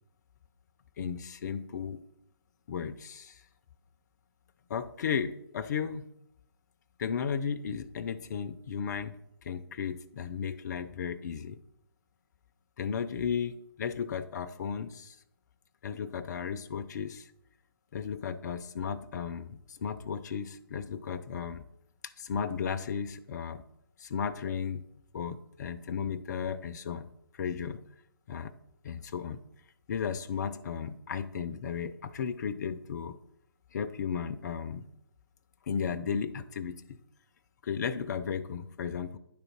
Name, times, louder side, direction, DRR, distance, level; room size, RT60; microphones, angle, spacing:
voice 1, 1.0-2.0 2.7-3.4 4.7-6.1 7.0-11.6 12.8-15.2 15.8-17.3 17.9-21.6 22.0-23.6 24.0-24.8 25.1-27.1 27.3-27.8 28.3-28.5 28.8-29.4 29.9-33.2 33.7-34.8 35.6-36.8 37.6-39.2, left 7 dB, 45° left, 11 dB, 0.6 m, -35 dB
10.0 x 4.0 x 5.8 m, 0.77 s
figure-of-eight pair, 140°, 13 cm